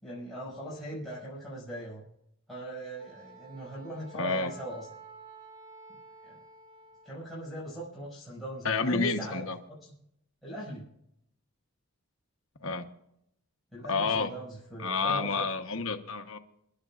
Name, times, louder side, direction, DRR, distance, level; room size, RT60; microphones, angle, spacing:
voice 1, 0.0-2.0 2.5-4.9 6.3-6.4 7.0-9.5 9.8-9.9 10.4-10.9 13.7-15.5, equal, ahead, -9 dB, 6.2 m, -39 dB
Wind instrument woodwind instrument, 3.0-7.3, right 3 dB, 20° right, 3.0 m, -51 dB
voice 2, 4.1-4.5 8.6-9.6 12.6-12.8 13.9-14.3 14.8-16.4, left 4 dB, 70° left, 6 dB, 1.1 m, -29 dB
28.0 x 11.5 x 2.5 m, 0.75 s
head